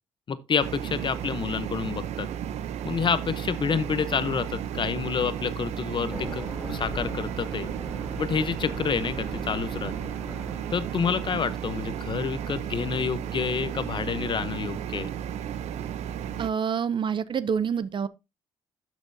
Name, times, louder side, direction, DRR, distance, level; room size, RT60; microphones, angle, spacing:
voice 1, 0.3-2.3 2.8-7.7 8.2-10.1 10.7-15.1, left 6 dB, 45° left, 0.8 m, -28 dB
sound 1, 0.6-16.5, right 9 dB, 85° right, 0.7 m, -34 dB
sound 2, 6.0-11.6, equal, 10° right, 3.0 m, -40 dB
voice 2, 16.4-18.1, right 7 dB, 45° right, 0.6 m, -27 dB
12.0 x 6.2 x 2.7 m
cardioid pair, 80°, 11 cm